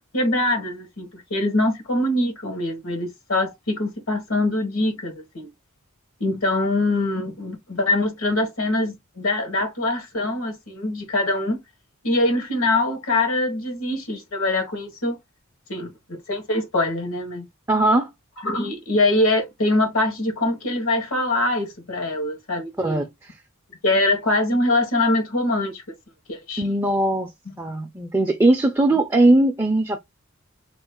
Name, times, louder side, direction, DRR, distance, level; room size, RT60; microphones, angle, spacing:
voice 1, 0.1-5.5 6.2-11.6 12.0-15.2 15.7-17.5 18.4-23.0 23.8-25.8 26.3-26.6, left 2 dB, 80° left, 1.5 m, -23 dB
voice 2, 17.7-18.1 22.8-23.3 26.6-27.3 27.6-30.0, right 2 dB, 15° right, 0.4 m, -19 dB
3.0 x 2.4 x 3.6 m
head